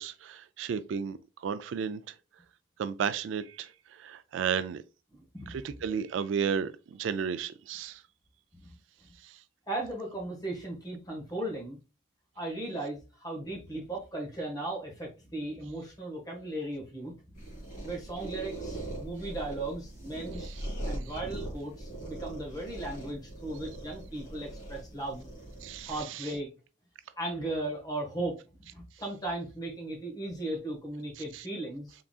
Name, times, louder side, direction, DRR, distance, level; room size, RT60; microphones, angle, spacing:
voice 1, 0.0-2.2 2.8-4.8 5.5-8.0 9.2-9.4 20.4-20.6 25.6-26.3 31.3-31.5, right 7 dB, 75° right, 0.3 m, -33 dB
voice 2, 9.7-11.8 12.3-17.4 17.8-20.5 20.8-25.3 25.8-26.5 27.2-31.9, right 2 dB, 20° left, 1.4 m, -37 dB
sound 1, 17.3-26.0, right 1 dB, 40° left, 1.9 m, -41 dB
3.8 x 3.6 x 2.3 m
head